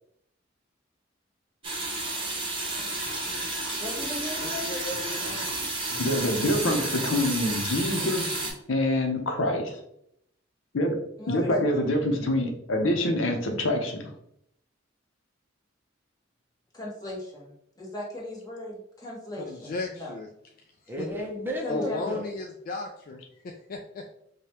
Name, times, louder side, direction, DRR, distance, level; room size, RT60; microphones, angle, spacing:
sound 1, 1.6-8.5, right 2 dB, 30° right, 1.0 m, -31 dB
voice 1, 3.8-4.7 11.2-11.8 16.7-20.1 21.6-22.0, left 1 dB, 20° left, -4 dB, 1.2 m, -37 dB
voice 2, 4.4-5.5 19.4-20.3 21.0-21.1 21.7-24.2, left 3 dB, 45° left, 2 dB, 0.3 m, -35 dB
voice 3, 4.9-7.0 20.9-22.3, equal, 10° right, 0 dB, 0.6 m, -37 dB
voice 4, 6.0-8.4 8.7-9.8 10.7-11.0 11.3-14.0, left 1 dB, 85° left, 3 dB, 0.7 m, -26 dB
4.9 x 2.2 x 2.8 m, 0.74 s
head